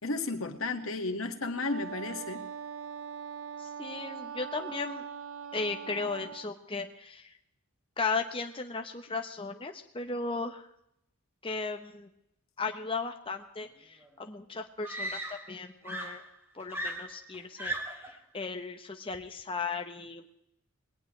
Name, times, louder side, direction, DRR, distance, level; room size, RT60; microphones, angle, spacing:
voice 1, 0.0-2.4, left 3 dB, 80° left, 5 dB, 1.8 m, -33 dB
Wind instrument woodwind instrument, 1.6-6.5, right 7 dB, 75° right, 0.9 m, -41 dB
voice 2, 3.6-5.0 5.5-7.3 8.0-10.6 11.4-12.1 12.6-16.2 16.5-20.3, left 4 dB, 25° left, 4 dB, 0.9 m, -36 dB
Screaming, 14.0-14.1 14.8-15.6 15.9-18.2 19.1-19.4, right 1 dB, 10° right, 2.7 m, -37 dB
20.5 x 18.5 x 3.3 m, 0.77 s
head